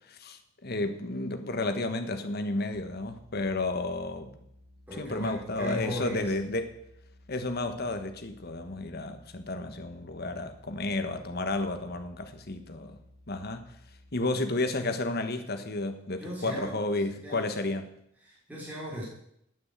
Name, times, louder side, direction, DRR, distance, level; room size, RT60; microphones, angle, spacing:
voice 1, 0.1-4.3 5.0-6.7 7.3-13.0 13.3-13.7 14.1-17.9, left 2 dB, 50° left, 7 dB, 1.4 m, -32 dB
sound 1, 2.7-14.2, left 1 dB, 60° right, 3.8 m, -57 dB
voice 2, 4.9-6.5 16.2-16.8 17.2-17.5 18.2-19.1, equal, 10° right, -6 dB, 4.7 m, -37 dB
9.4 x 9.1 x 8.3 m, 0.76 s
head